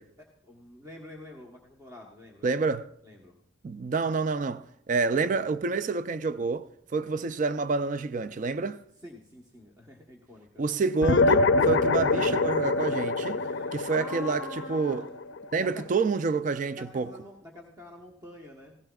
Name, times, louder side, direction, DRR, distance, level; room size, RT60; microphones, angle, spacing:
voice 1, 0.2-2.6 3.0-3.4 6.9-7.1 9.0-10.6 13.3-15.1 15.6-15.8 16.8-18.8, left 2 dB, 15° right, 1.1 m, -46 dB
voice 2, 2.4-2.9 3.6-8.8 10.6-13.4 13.7-15.0 15.5-17.1, right 4 dB, 40° right, 0.3 m, -28 dB
sound 1, 11.0-15.8, left 3 dB, 65° left, 0.4 m, -25 dB
16.5 x 15.0 x 2.3 m
head